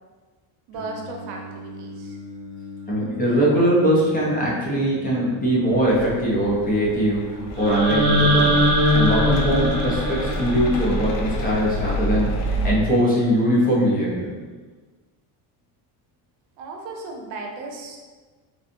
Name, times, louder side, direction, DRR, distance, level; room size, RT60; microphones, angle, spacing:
Singing, 0.7-7.3, left 3 dB, 55° left, 1.4 m, -39 dB
voice 1, 0.7-2.2 16.6-18.0, right 3 dB, 90° right, 1 dB, 0.7 m, -35 dB
voice 2, 2.9-8.5 8.9-14.3, equal, 20° left, -6 dB, 0.7 m, -21 dB
sound 1, 5.7-12.7, equal, 80° left, 0.6 m, -28 dB
sound 2, 7.6-11.6, equal, 45° right, 0.5 m, -21 dB
3.1 x 2.6 x 2.6 m, 1.4 s
cardioid pair, 150°, 43 cm